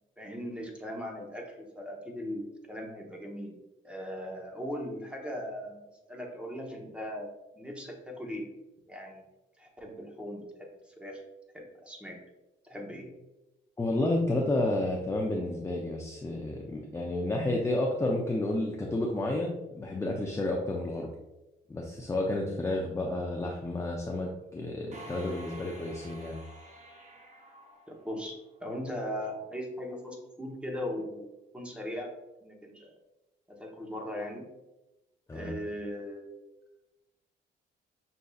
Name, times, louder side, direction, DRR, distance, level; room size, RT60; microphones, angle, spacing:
voice 1, 0.2-3.5 3.8-5.8 6.1-8.5 8.9-9.2 9.6-10.5 10.9-11.2 11.5-12.2 12.6-13.1 27.9-32.1 32.4-33.0 33.5-34.5 35.3-36.4, equal, 5° right, 0 dB, 0.9 m, -39 dB
voice 2, 13.8-21.1 21.7-26.4 35.3-35.6, left 2 dB, 15° left, 0 dB, 0.5 m, -31 dB
sound 1, 24.9-28.6, right 1 dB, 35° right, 1.0 m, -49 dB
6.3 x 2.7 x 2.3 m, 0.99 s
cardioid pair, 90°, 20 cm